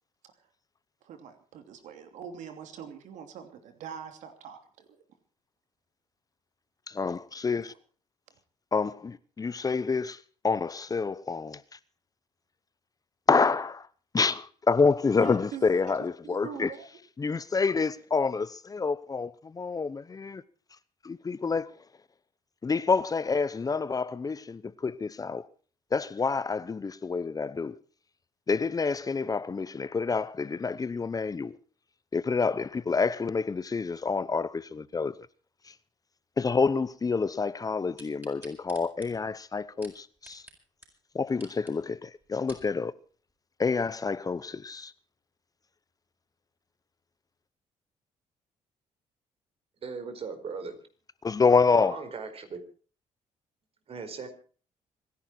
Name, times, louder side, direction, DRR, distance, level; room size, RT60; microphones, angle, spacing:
voice 1, 1.0-4.9 7.6-7.8 15.2-15.6 16.2-16.9, right 7 dB, 80° right, 2.9 m, -43 dB
voice 2, 6.9-7.7 8.7-11.6 13.3-13.9 14.1-16.7 17.2-20.4 21.0-21.7 22.6-25.5 25.9-27.8 28.5-31.6 32.1-35.1 35.6-35.7 36.4-40.4 41.1-42.9 43.6-44.9 51.2-52.0, left 4 dB, 30° left, 0.9 m, -28 dB
sound 1, 38.0-40.6 40.8-40.9 41.3-41.7 42.2-42.7 43.3-43.4, right 1 dB, 15° right, 7.4 m, -51 dB
voice 3, 49.8-50.8 51.7-52.6 53.9-54.3, right 5 dB, 50° right, 4.7 m, -38 dB
26.0 x 11.0 x 4.4 m
cardioid pair, 80°, 12 cm